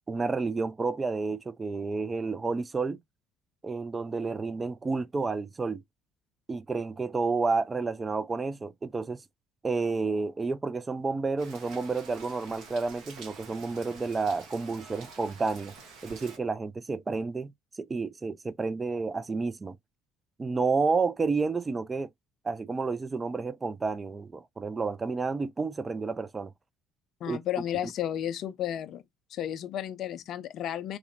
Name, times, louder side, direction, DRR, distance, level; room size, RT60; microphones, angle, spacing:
voice 1, 0.1-3.0 3.6-5.8 6.5-9.2 9.6-15.7 16.0-17.5 17.8-19.8 20.4-22.1 22.4-26.5 27.3-27.4 27.8-27.9, right 4 dB, 25° right, 0.3 m, -30 dB
Rain, 11.4-16.4, right 4 dB, 55° right, 0.9 m, -48 dB
voice 2, 27.2-29.0 29.3-31.0, left 11 dB, 50° left, 0.4 m, -33 dB
2.4 x 2.1 x 2.6 m
figure-of-eight pair, 55°, 0 cm